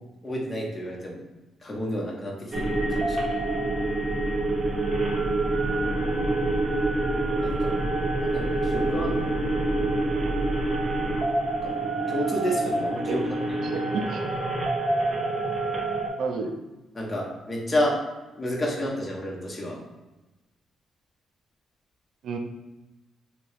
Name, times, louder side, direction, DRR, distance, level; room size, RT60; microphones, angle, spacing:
voice 1, 0.2-1.2 1.6-3.4 7.4-7.7 8.2-9.3 11.6-11.7 12.1-13.8 16.9-18.0 18.4-19.8, equal, 20° left, -2 dB, 0.8 m, -30 dB
sound 1, 2.5-16.1, right 2 dB, 35° right, 0.7 m, -26 dB
voice 2, 4.6-4.9 13.1-13.2 13.6-14.3 16.2-16.5 22.2-22.4, right 4 dB, 70° right, 4 dB, 0.4 m, -31 dB
3.0 x 2.8 x 3.1 m, 1.1 s
cardioid pair, 90°, 0 cm